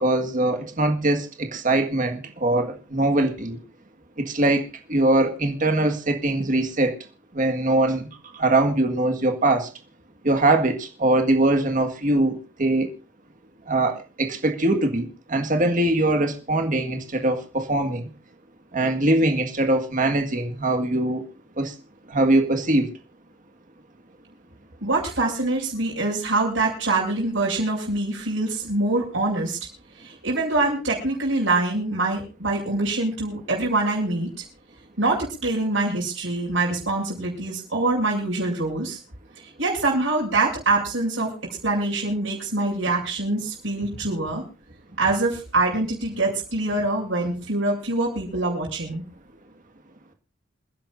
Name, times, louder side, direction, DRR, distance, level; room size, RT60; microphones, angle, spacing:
voice 1, 0.0-3.6 4.2-7.0 7.3-8.1 8.4-9.7 10.2-12.9 13.7-18.1 18.7-21.2 21.6-21.7 22.1-22.9, right 2 dB, 45° right, 1.8 m, -22 dB
voice 2, 24.8-29.6 30.0-34.3 35.0-39.0 39.6-44.4 45.0-49.0, right 2 dB, 90° right, 6.6 m, -24 dB
28.0 x 10.5 x 2.6 m
head